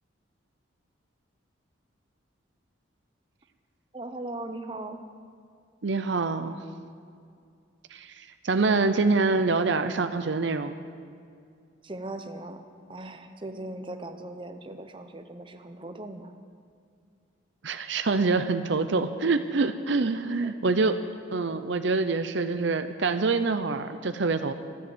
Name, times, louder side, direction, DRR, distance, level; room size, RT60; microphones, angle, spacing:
voice 1, 3.9-5.0 11.8-12.6 12.9-16.3 20.4-20.5, right 2 dB, 25° right, 7 dB, 0.8 m, -39 dB
voice 2, 5.8-6.6 7.9-8.1 8.4-10.8 17.6-21.0 21.3-24.5, right 3 dB, 65° right, 9 dB, 0.6 m, -25 dB
14.0 x 11.5 x 7.9 m, 2.3 s
head